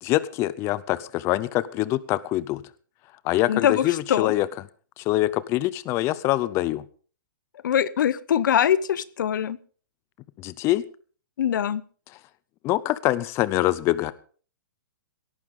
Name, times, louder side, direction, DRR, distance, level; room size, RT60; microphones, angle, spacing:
voice 1, 0.0-2.6 3.2-4.5 5.0-6.8 10.4-10.8 12.6-14.1, left 16 dB, 25° left, 17 dB, 0.6 m, -24 dB
voice 2, 3.5-3.8 4.1-4.3 7.6-9.6 11.4-11.8, left 9 dB, 70° left, 18 dB, 0.9 m, -22 dB
17.5 x 14.0 x 3.7 m, 0.41 s
hypercardioid pair, 150°, 11 cm